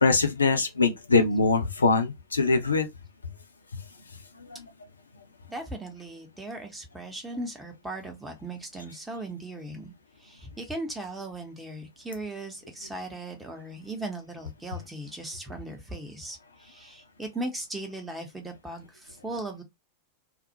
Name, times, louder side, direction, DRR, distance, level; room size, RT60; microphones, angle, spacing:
voice 1, 0.0-2.9, left 3 dB, 75° left, 0.5 m, -22 dB
voice 2, 5.5-9.9 10.2-19.6, right 2 dB, 10° right, 0.8 m, -38 dB
2.3 x 2.0 x 2.7 m
figure-of-eight pair, 90°, 0 cm